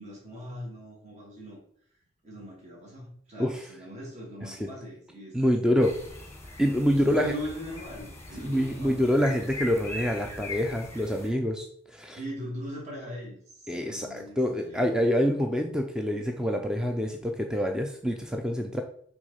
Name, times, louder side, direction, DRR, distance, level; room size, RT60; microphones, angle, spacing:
voice 1, 0.0-1.6 2.2-5.4 6.9-9.1 12.1-14.9, equal, 35° right, -4 dB, 2.2 m, -40 dB
voice 2, 5.3-5.9 6.6-7.3 8.4-12.2 13.7-18.8, equal, 5° right, 3 dB, 0.5 m, -26 dB
sound 1, 5.8-11.3, left 2 dB, 15° left, 1.3 m, -41 dB
6.2 x 3.6 x 5.5 m, 0.62 s
head